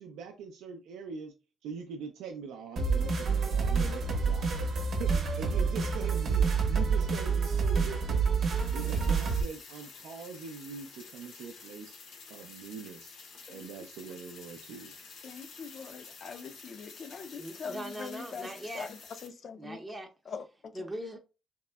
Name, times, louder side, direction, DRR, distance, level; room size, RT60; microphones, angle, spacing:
voice 1, 0.0-1.3 1.6-4.6 4.9-8.2 8.7-12.0 12.3-13.1 13.5-14.9, right 6 dB, 90° right, 0.3 m, -42 dB
sound 1, 2.8-9.4, right 5 dB, 65° right, 0.7 m, -28 dB
sound 2, 8.5-19.3, left 4 dB, 80° left, 0.7 m, -50 dB
voice 2, 15.2-19.8 20.3-20.7, left 5 dB, 50° left, 0.4 m, -43 dB
voice 3, 17.4-18.9 19.6-20.1 20.7-21.2, right 1 dB, 25° right, 0.5 m, -40 dB
3.5 x 2.0 x 2.2 m
cardioid pair, 90°, 0 cm